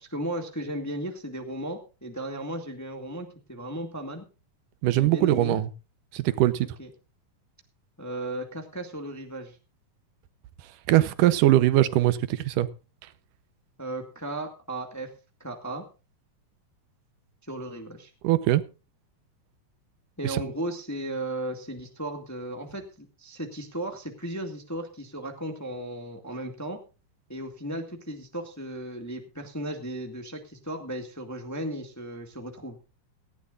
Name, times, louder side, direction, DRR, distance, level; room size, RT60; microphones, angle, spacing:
voice 1, 0.0-4.2 4.9-5.6 6.6-6.9 8.0-9.6 13.8-15.1 15.4-15.9 17.5-18.1 20.2-26.8 27.3-32.8, right 1 dB, 10° left, 1.2 m, -35 dB
voice 2, 4.8-5.7 6.1-6.7 10.9-12.7 18.2-18.6 20.2-20.4, right 14 dB, 85° right, 2.5 m, -21 dB
18.5 x 15.5 x 2.5 m
omnidirectional pair, 3.7 m